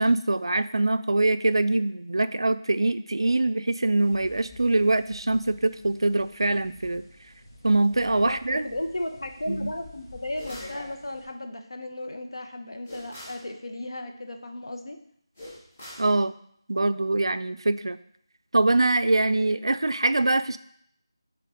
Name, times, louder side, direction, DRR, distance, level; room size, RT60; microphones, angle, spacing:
voice 1, 0.0-7.0 7.6-8.7 9.5-9.7 16.0-16.3 16.7-18.0 18.5-20.6, right 2 dB, 70° right, 12 dB, 0.4 m, -23 dB
sound 1, 4.0-11.2, left 1 dB, 50° left, 3.0 m, -48 dB
voice 2, 8.0-15.0, left 1 dB, 70° left, 5 dB, 1.0 m, -35 dB
sound 2, 10.4-10.8 12.9-13.5 15.4-16.1, left 1 dB, 20° left, 1.3 m, -43 dB
6.8 x 3.7 x 5.0 m, 0.67 s
figure-of-eight pair, 180°, 3 cm